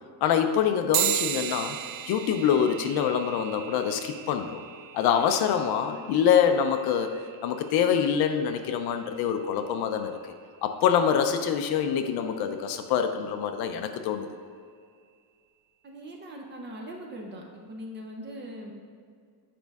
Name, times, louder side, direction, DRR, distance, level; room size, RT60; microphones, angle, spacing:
voice 1, 0.2-1.8 2.1-4.6 4.9-7.1 7.4-10.1 10.6-14.3, left 8 dB, 55° left, 7 dB, 0.5 m, -25 dB
sound 1, 0.9-10.8, right 13 dB, 90° right, 0.6 m, -36 dB
voice 2, 15.8-17.4 17.7-18.7, equal, 25° right, 0 dB, 0.5 m, -40 dB
8.6 x 5.3 x 3.5 m, 2.1 s
cardioid pair, 175°, 49 cm